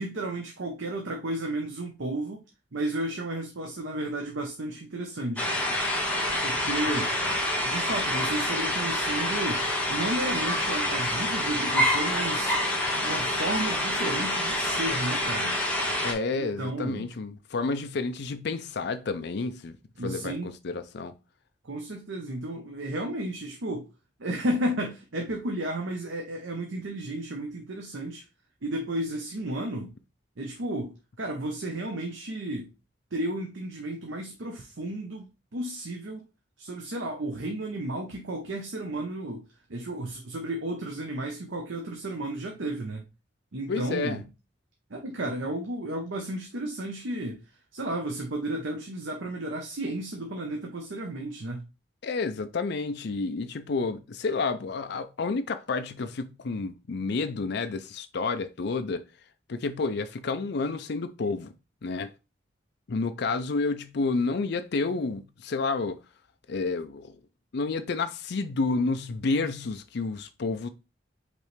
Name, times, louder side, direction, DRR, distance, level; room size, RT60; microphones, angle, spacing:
voice 1, 0.0-2.4 2.7-5.5 6.4-7.1 7.6-12.6 13.0-15.6 16.3-17.1 20.0-20.5 21.6-23.8 24.2-28.2 28.6-29.9 30.4-32.7 33.1-36.2 36.6-39.4 39.7-43.0 43.5-44.3 44.9-47.4 47.7-51.6, right 1 dB, 85° right, 0.8 m, -33 dB
sound 1, 5.4-16.1, left 1 dB, 10° left, 1.0 m, -27 dB
voice 2, 16.0-19.8 20.0-21.1 43.7-44.2 52.0-59.0 59.5-61.5 61.8-62.1 62.9-66.0 66.5-67.1 67.5-70.7, left 3 dB, 60° left, 0.5 m, -30 dB
5.1 x 3.2 x 3.2 m
head